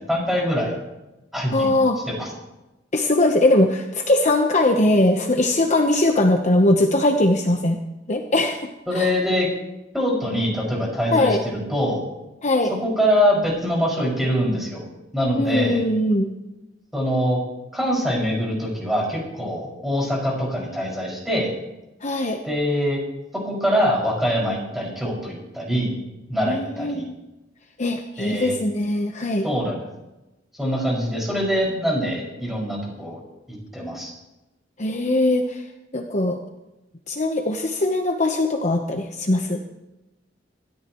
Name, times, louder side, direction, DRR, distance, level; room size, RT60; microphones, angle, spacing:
voice 1, 0.1-0.7 1.3-1.7 2.1-2.3 8.9-9.5 9.9-12.0 12.8-14.8 15.1-15.8 16.9-17.4 17.7-21.5 22.4-23.0 23.4-25.9 26.3-27.0 28.2-28.6 29.4-29.8 30.5-33.2 33.5-34.1, equal, ahead, -3 dB, 5.9 m, -23 dB
voice 2, 1.5-2.0 2.9-7.8 8.1-8.7 8.9-9.1 11.1-11.4 12.4-12.7 15.4-16.3 22.0-22.4 26.5-27.2 27.8-29.5 34.8-35.6 35.9-36.4 37.1-39.6, left 1 dB, 40° left, 3 dB, 1.0 m, -20 dB
26.5 x 13.5 x 3.1 m, 0.99 s
head